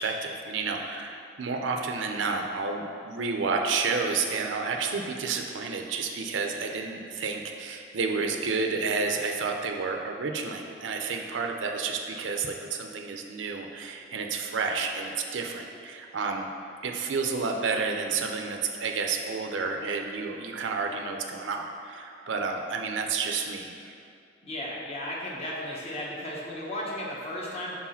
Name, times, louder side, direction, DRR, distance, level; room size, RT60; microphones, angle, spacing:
voice 1, 0.0-16.5 16.8-23.9, right 4 dB, 75° right, 3 dB, 0.5 m, -30 dB
voice 2, 24.4-27.7, left 1 dB, 35° left, -4 dB, 1.0 m, -35 dB
4.7 x 3.7 x 5.7 m, 2.4 s
head